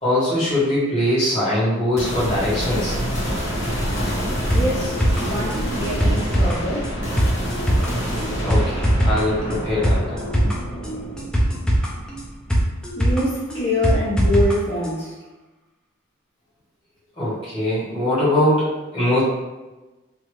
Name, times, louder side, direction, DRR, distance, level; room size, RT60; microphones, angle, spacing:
voice 1, 0.0-2.9 8.4-10.5 17.2-19.2, left 1 dB, 30° left, -11 dB, 1.4 m, -22 dB
sound 1, 2.0-13.3, equal, 85° left, 1.2 m, -27 dB
voice 2, 4.5-7.0 12.9-15.2, left 1 dB, 65° left, -9 dB, 1.1 m, -25 dB
sound 2, 4.5-14.6 14.8-14.9, equal, 5° left, 0.4 m, -22 dB
2.9 x 2.5 x 3.1 m, 1.1 s
head